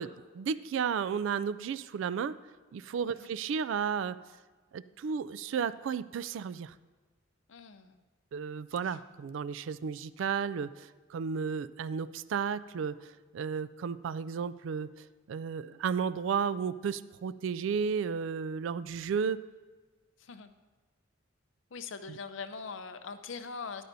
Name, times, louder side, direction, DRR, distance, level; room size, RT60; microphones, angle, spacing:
voice 1, 0.0-2.4 2.7-4.2 4.7-6.7 8.3-13.0 13.3-19.4, right 6 dB, 65° right, 17 dB, 0.3 m, -33 dB
voice 2, 7.5-8.0 8.8-9.0 20.2-20.5 21.7-23.8, left 5 dB, 65° left, 9 dB, 0.6 m, -42 dB
13.5 x 10.5 x 2.7 m, 1.3 s
head